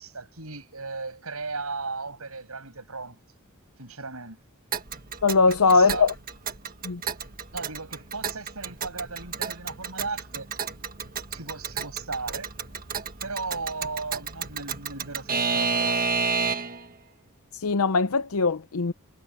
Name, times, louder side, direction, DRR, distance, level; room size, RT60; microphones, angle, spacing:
voice 1, 0.0-3.2 3.8-4.4 5.5-6.1 7.5-10.5 11.3-12.5 13.2-16.5, right 3 dB, 75° right, 7.3 m, -36 dB
Alarm / Clock, 4.7-16.9, right 5 dB, 40° right, 1.5 m, -31 dB
voice 2, 5.2-6.1 6.8-7.0 17.5-18.9, left 4 dB, 75° left, 0.7 m, -21 dB
head